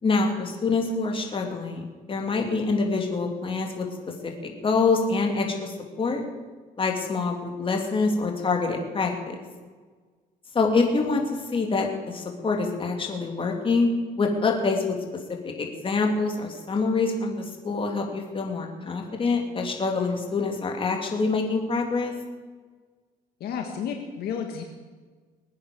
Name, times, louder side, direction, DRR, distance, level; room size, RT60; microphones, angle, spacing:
voice 1, 0.0-6.2 6.8-9.3 10.5-13.9 14.2-14.9 15.4-22.1, left 4 dB, 30° left, 2 dB, 3.3 m, -26 dB
voice 2, 23.4-24.6, left 7 dB, 70° left, 3 dB, 1.9 m, -31 dB
21.5 x 9.3 x 7.1 m, 1.5 s
cardioid pair, 110°, 17 cm